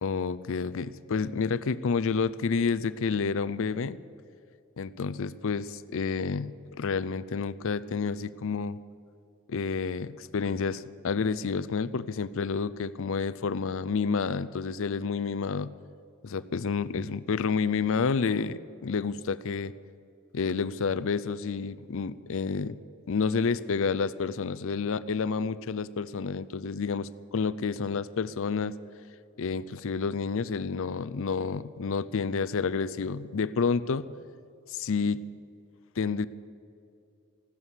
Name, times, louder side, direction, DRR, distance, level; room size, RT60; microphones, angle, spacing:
voice 1, 0.0-4.0 4.8-8.8 9.5-15.7 16.2-19.7 20.3-22.8 23.1-28.8 29.4-34.1 34.7-35.2 36.0-36.3, left 5 dB, 65° left, 17 dB, 0.5 m, -29 dB
15.5 x 12.5 x 7.3 m, 2.5 s
head